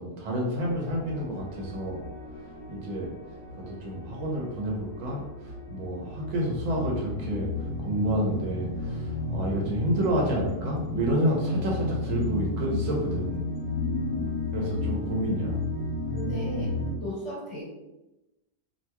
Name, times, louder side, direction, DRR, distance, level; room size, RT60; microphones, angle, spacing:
voice 1, 0.0-2.0 2.7-3.1 3.5-13.4 14.5-15.5, right 1 dB, 80° right, -2 dB, 1.2 m, -29 dB
sound 1, 0.6-16.9, left 2 dB, 80° left, 1.1 m, -33 dB
voice 2, 13.7-14.2 16.1-16.7 17.0-17.6, left 2 dB, 65° left, -5 dB, 1.4 m, -35 dB
2.9 x 2.8 x 2.2 m, 0.97 s
omnidirectional pair, 1.4 m